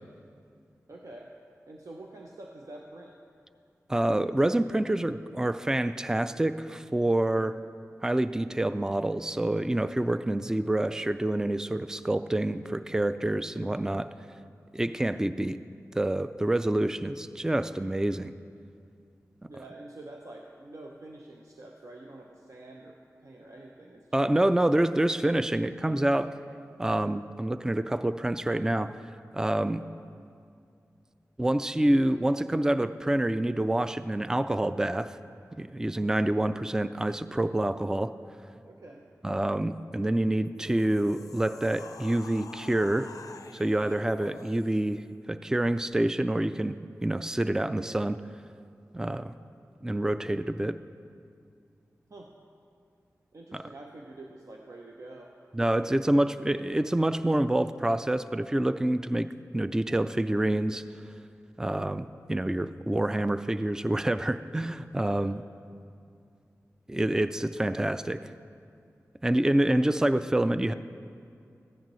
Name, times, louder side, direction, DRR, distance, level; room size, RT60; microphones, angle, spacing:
voice 1, 0.9-1.3 1.7-3.2 19.5-24.4 38.6-39.0 52.1-52.3 53.3-55.3 56.6-57.0 65.0-65.3, right 2 dB, 65° right, 0 dB, 0.7 m, -47 dB
voice 2, 3.9-7.6 8.0-14.1 14.7-15.6 15.9-18.3 24.1-26.3 26.8-29.0 29.3-29.8 31.4-35.2 35.6-38.1 39.2-43.1 43.5-48.2 48.9-49.4 49.8-50.8 53.5-53.6 55.5-59.3 59.5-60.8 61.6-65.4 66.9-68.2 69.2-70.7, right 1 dB, 10° right, 12 dB, 0.3 m, -27 dB
sound 1, 40.4-45.0, left 5 dB, 85° left, 0.4 m, -48 dB
14.5 x 10.0 x 3.1 m, 2.4 s
cardioid pair, 50°, 6 cm